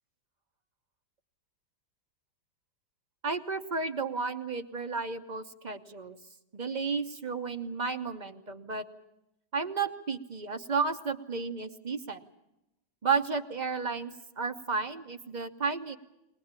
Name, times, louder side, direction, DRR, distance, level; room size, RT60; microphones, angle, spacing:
voice 1, 3.2-6.2 6.5-8.8 9.5-12.2 13.0-16.0, right 5 dB, 45° right, 8 dB, 0.5 m, -32 dB
22.0 x 19.5 x 8.8 m, 0.90 s
omnidirectional pair, 2.1 m